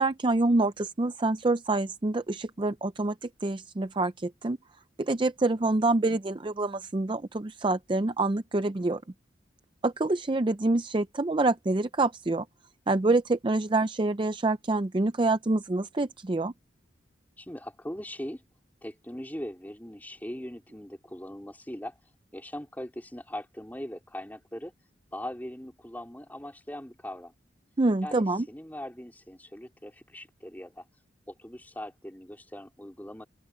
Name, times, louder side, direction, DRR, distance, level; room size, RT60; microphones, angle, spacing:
voice 1, 0.0-4.6 5.0-9.0 9.8-12.5 12.9-16.5 27.8-28.5, right 2 dB, 25° right, 0.5 m, -26 dB
voice 2, 17.4-18.4 18.8-21.9 22.3-24.7 25.1-27.3 28.0-30.8 31.3-33.2, left 1 dB, 10° left, 3.5 m, -40 dB
open air
head